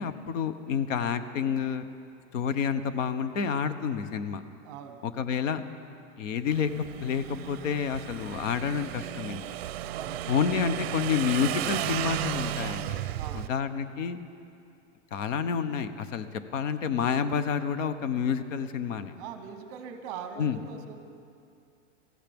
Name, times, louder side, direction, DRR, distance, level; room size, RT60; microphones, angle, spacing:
voice 1, 0.0-1.8 2.3-4.4 5.0-5.6 6.2-6.7 7.0-9.4 10.3-13.0 13.3-14.2 15.1-19.1 20.4-20.6, left 7 dB, 85° left, 11 dB, 1.0 m, -29 dB
voice 2, 4.6-5.0 9.9-10.2 13.2-13.5 19.2-21.0, right 7 dB, 30° right, 7 dB, 0.9 m, -41 dB
Motorcycle / Engine, 6.5-13.5, right 13 dB, 55° right, 0.5 m, -34 dB
19.0 x 15.5 x 3.5 m, 2.5 s
supercardioid pair, 175°, 37 cm